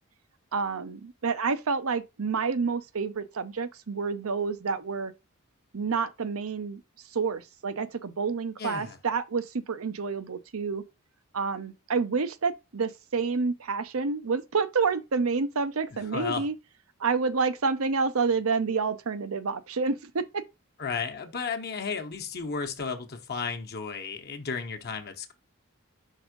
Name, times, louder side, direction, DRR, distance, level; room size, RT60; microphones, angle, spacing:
voice 1, 0.5-5.1 5.7-10.8 11.3-16.5 17.0-20.4, right 5 dB, 80° right, 0.7 m, -29 dB
voice 2, 8.6-9.0 15.9-16.4 20.8-25.3, left 5 dB, 50° left, 0.9 m, -33 dB
5.6 x 3.6 x 5.0 m
head